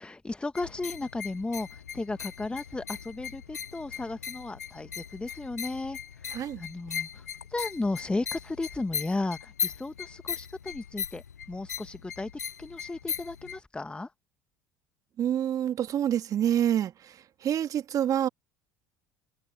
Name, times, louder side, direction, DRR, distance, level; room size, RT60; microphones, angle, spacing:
voice 1, 0.0-12.3 12.6-14.1, left 2 dB, 10° left, 1.3 m, -35 dB
sound 1, 0.5-13.6, left 7 dB, 85° left, 0.9 m, -38 dB
voice 2, 6.3-6.6 15.2-18.3, right 10 dB, 45° right, 2.0 m, -27 dB
figure-of-eight pair, 60°, 9 cm